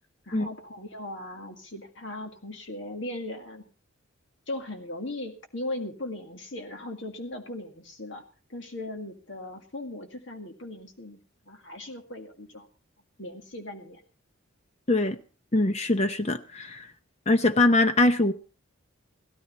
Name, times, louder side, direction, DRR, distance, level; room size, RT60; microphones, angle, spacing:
voice 1, 0.3-3.6 4.5-8.2 8.5-11.2 11.5-12.7 13.2-14.0, left 1 dB, 60° left, 4 dB, 2.0 m, -38 dB
voice 2, 15.5-16.9 17.3-18.3, left 2 dB, 30° left, 9 dB, 0.7 m, -22 dB
16.5 x 13.5 x 4.1 m, 0.37 s
head